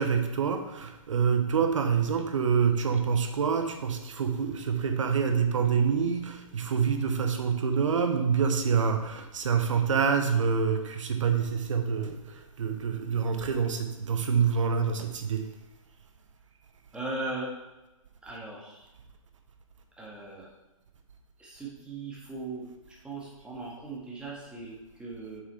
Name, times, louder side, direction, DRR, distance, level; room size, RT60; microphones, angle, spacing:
voice 1, 0.0-15.4, right 6 dB, 65° right, 6 dB, 1.0 m, -26 dB
voice 2, 16.9-17.5 18.2-18.9 20.0-20.5 21.4-25.4, right 2 dB, 5° right, -5 dB, 1.8 m, -38 dB
7.6 x 6.3 x 3.3 m, 1.0 s
figure-of-eight pair, 125°, 18 cm